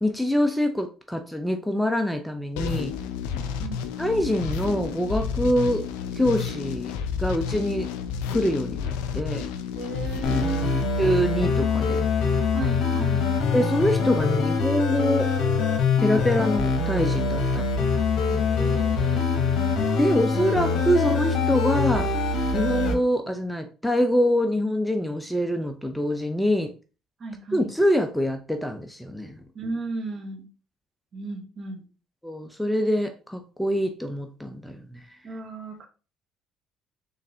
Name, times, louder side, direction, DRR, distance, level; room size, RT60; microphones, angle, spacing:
voice 1, 0.0-2.9 4.0-5.9 6.1-6.9 7.2-7.9 8.3-9.5 11.0-12.0 13.5-15.3 16.0-17.6 20.0-22.1 22.5-26.7 27.5-29.4 32.2-35.0, equal, 5° left, 6 dB, 0.6 m, -25 dB
sound 1, 2.6-11.4, left 7 dB, 85° left, 0.4 m, -31 dB
voice 2, 3.3-3.8 9.7-10.8 12.5-13.3 18.3-19.3 20.2-20.4 27.2-27.7 29.5-30.5 31.1-31.9 35.2-35.9, right 2 dB, 45° right, 4 dB, 1.1 m, -35 dB
sound 2, 10.2-22.9, left 4 dB, 65° left, 1.1 m, -24 dB
3.8 x 3.6 x 2.7 m, 0.34 s
hypercardioid pair, 65°, 0 cm